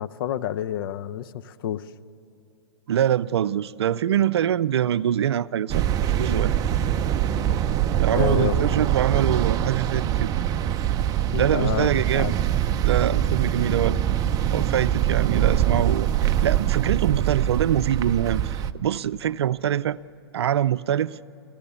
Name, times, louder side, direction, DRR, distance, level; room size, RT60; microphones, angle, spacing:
voice 1, 0.0-1.9 8.1-8.7 9.1-9.3 11.3-12.3, left 11 dB, 55° left, 0.7 m, -29 dB
voice 2, 2.9-6.5 8.0-10.3 11.3-12.3 12.8-14.0 14.5-20.0 20.3-21.2, right 10 dB, 70° right, 0.5 m, -24 dB
sound 1, 5.7-18.7, right 10 dB, 25° right, 0.6 m, -23 dB
27.0 x 15.5 x 7.0 m
hypercardioid pair, 120°, 14 cm